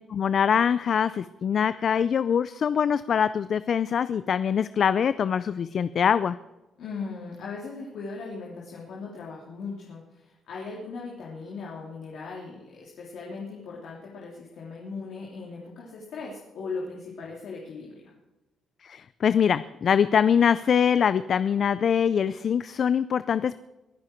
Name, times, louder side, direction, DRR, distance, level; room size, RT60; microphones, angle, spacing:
voice 1, 0.1-6.4 18.8-23.6, left 7 dB, 55° left, 14 dB, 0.5 m, -23 dB
voice 2, 6.8-18.0, left 4 dB, 80° left, -4 dB, 3.1 m, -38 dB
22.0 x 10.5 x 4.6 m, 1.0 s
cardioid pair, 90°, 0 cm